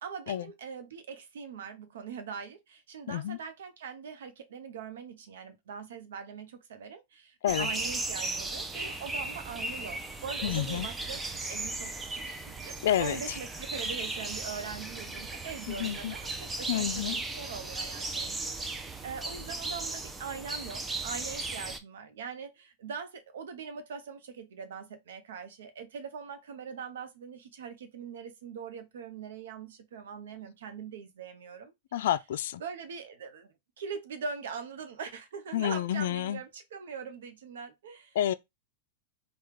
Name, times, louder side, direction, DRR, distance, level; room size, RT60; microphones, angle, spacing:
voice 1, 0.0-32.1 32.6-38.2, right 6 dB, 80° right, 0.7 m, -42 dB
voice 2, 3.1-3.4 7.4-7.7 10.4-10.9 12.8-13.2 15.7-16.1 16.7-17.2 31.9-32.6 35.5-36.4 38.2-38.3, left 11 dB, 70° left, 0.3 m, -29 dB
sound 1, 7.5-21.8, right 2 dB, 10° right, 0.5 m, -36 dB
3.5 x 2.3 x 3.2 m
hypercardioid pair, 125°, 0 cm